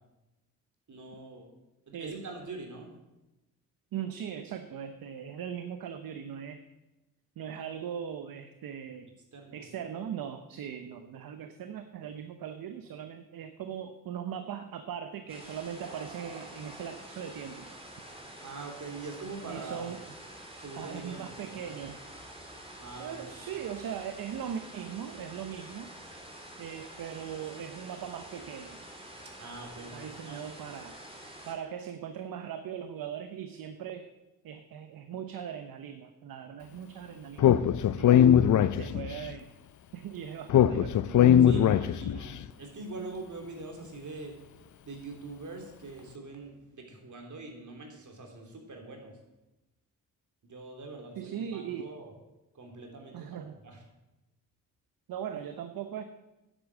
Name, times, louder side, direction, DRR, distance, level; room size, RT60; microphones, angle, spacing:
voice 1, 0.9-1.5 1.9-2.9 9.3-9.6 18.4-19.9 20.6-21.7 22.8-23.4 29.4-30.5 41.4-44.4 44.8-49.2 50.4-52.1 52.5-53.8, right 3 dB, 55° right, 2 dB, 3.4 m, -43 dB
voice 2, 3.9-6.6 7.4-9.1 9.5-17.7 19.5-20.0 20.8-22.0 23.0-25.9 26.6-28.8 29.6-31.0 31.4-34.1 34.4-37.6 37.9-38.3 38.7-39.5 39.9-41.5 51.2-51.9 53.1-53.6 55.1-56.0, right 8 dB, 70° right, 8 dB, 0.9 m, -39 dB
sound 1, 15.3-31.6, right 1 dB, 15° right, 3.6 m, -47 dB
Speech, 37.4-39.2 40.5-42.3, left 10 dB, 55° left, 0.6 m, -21 dB
10.0 x 8.1 x 7.4 m, 1.0 s
supercardioid pair, 50°, 37 cm